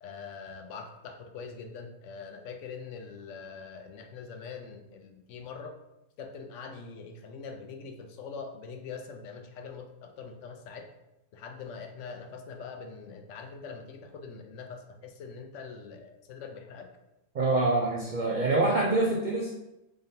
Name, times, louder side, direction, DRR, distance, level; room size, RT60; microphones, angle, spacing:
voice 1, 0.0-5.7 6.2-10.9 11.3-16.9 18.4-19.0, left 5 dB, 70° left, 5 dB, 0.9 m, -43 dB
voice 2, 17.3-19.5, right 2 dB, 75° right, -2 dB, 0.4 m, -25 dB
3.7 x 3.5 x 2.7 m, 0.90 s
omnidirectional pair, 1.4 m